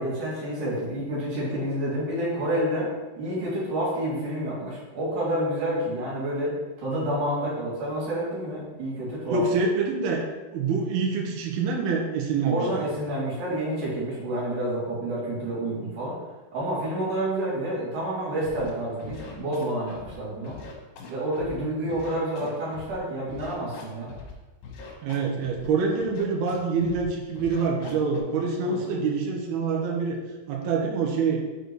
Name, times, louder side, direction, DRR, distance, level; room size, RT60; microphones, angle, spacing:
voice 1, 0.0-2.9 3.2-9.4 12.5-16.1 16.5-20.6 21.1-24.1 28.6-28.8, right 1 dB, 55° right, -7 dB, 3.9 m, -29 dB
voice 2, 9.3-10.2 10.5-12.8 25.0-30.2 30.5-31.4, right 4 dB, 75° right, 0 dB, 2.8 m, -26 dB
Scratching (performance technique), 18.4-18.7 19.0-20.1 20.4-21.5 21.9-23.0 23.3-24.3 24.6-25.7 26.0-26.5 26.8-27.1 27.3-28.2, left 4 dB, 70° left, 2.8 m, -42 dB
6.7 x 4.5 x 4.7 m, 1.2 s
omnidirectional pair, 4.6 m